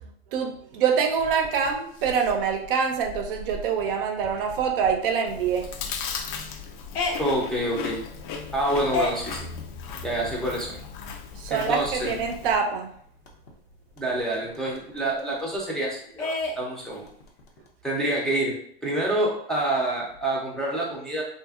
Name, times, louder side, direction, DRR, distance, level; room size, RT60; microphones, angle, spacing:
voice 1, 0.0-5.7 11.4-12.9, right 6 dB, 65° right, 4 dB, 0.6 m, -25 dB
sound 1, 1.1-12.6 12.9-13.0 13.3-15.8 16.2-17.7, left 3 dB, 85° left, 0.8 m, -36 dB
Chewing mastication, 5.3-12.6, left 6 dB, 55° left, 0.5 m, -37 dB
voice 2, 7.2-8.0 8.5-9.4 10.0-10.8 11.5-12.1 14.0-17.1 17.8-18.5 18.8-21.2, right 1 dB, ahead, -5 dB, 0.5 m, -27 dB
2.7 x 2.6 x 2.3 m, 0.64 s
hypercardioid pair, 120°, 30 cm